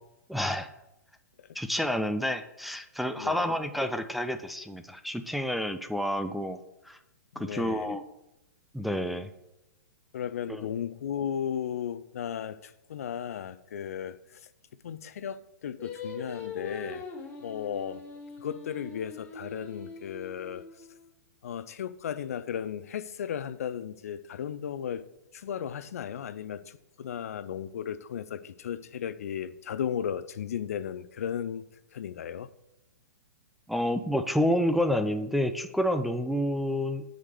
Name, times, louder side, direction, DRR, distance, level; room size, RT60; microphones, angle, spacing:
voice 1, 0.3-0.7 1.6-6.6 6.9-7.0 7.4-8.0 8.7-9.3 10.5-10.6 33.7-37.0, equal, ahead, 7 dB, 0.4 m, -29 dB
voice 2, 3.2-3.5 7.3-7.9 10.1-14.5 14.8-17.0 17.4-18.0 18.4-20.6 21.4-25.1 25.3-31.7 31.9-32.5, left 8 dB, 60° left, 14 dB, 0.5 m, -35 dB
Singing, 15.8-21.1, left 4 dB, 15° left, 1.6 m, -42 dB
6.4 x 5.1 x 6.4 m, 0.89 s
figure-of-eight pair, 115°, 9 cm